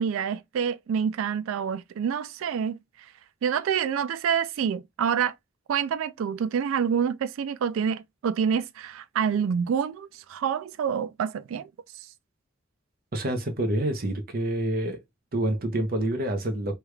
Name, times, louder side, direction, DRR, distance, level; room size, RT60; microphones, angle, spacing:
voice 1, 0.0-2.8 3.4-5.4 5.7-11.7, right 7 dB, 75° right, 0.3 m, -27 dB
voice 2, 13.1-15.0 15.3-16.7, right 1 dB, 50° right, 0.8 m, -27 dB
3.3 x 2.3 x 3.1 m
head